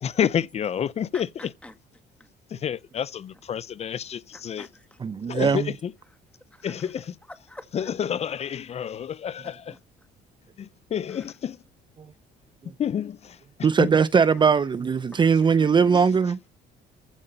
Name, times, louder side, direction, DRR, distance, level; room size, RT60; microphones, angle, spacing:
voice 1, 0.0-1.5 2.5-4.7 5.3-5.9 6.6-7.1 7.7-9.7 10.6-11.6 12.8-13.4 13.8-13.9, left 8 dB, 40° left, 0.5 m, -29 dB
voice 2, 1.1-1.7 2.2-2.3 4.6-5.0 6.5-6.9 7.5-7.9 9.7-9.8 11.1-11.3 15.1-15.2 15.6-16.0, left 1 dB, 5° left, 1.9 m, -46 dB
voice 3, 5.0-5.7 12.0-12.1 12.6-12.7 13.6-16.4, right 6 dB, 30° right, 0.6 m, -20 dB
14.5 x 5.0 x 5.5 m
cardioid pair, 110°, 17 cm